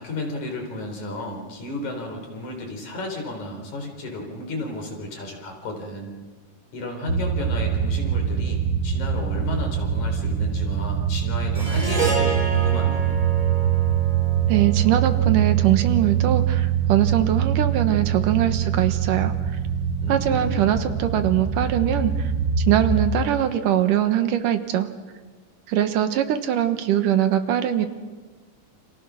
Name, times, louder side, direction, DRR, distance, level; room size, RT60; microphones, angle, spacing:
voice 1, 0.0-6.1 6.7-13.2 20.0-20.7, left 2 dB, 60° left, 2 dB, 5.5 m, -33 dB
sound 1, 7.1-23.1, right 8 dB, 40° right, 2.0 m, -23 dB
Harp, 11.5-16.0, right 4 dB, 20° right, 1.6 m, -30 dB
voice 2, 14.5-19.3 20.1-22.3 22.6-24.9 25.7-27.9, right 11 dB, 75° right, 8 dB, 2.8 m, -22 dB
29.0 x 27.5 x 6.3 m, 1.4 s
omnidirectional pair, 3.8 m